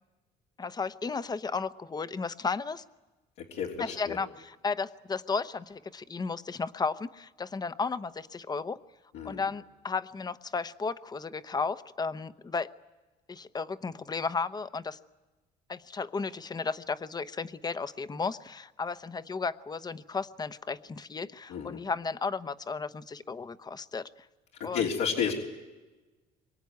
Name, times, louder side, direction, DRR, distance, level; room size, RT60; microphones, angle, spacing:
voice 1, 0.6-2.8 3.8-8.8 9.2-12.7 13.3-15.0 15.7-24.1 24.6-24.9, left 4 dB, 25° left, 13 dB, 0.9 m, -34 dB
voice 2, 3.4-4.2 9.1-9.4 21.5-21.8 24.7-25.3, left 7 dB, 85° left, -3 dB, 3.3 m, -31 dB
25.5 x 23.5 x 9.5 m, 1.2 s
cardioid pair, 110°, 17 cm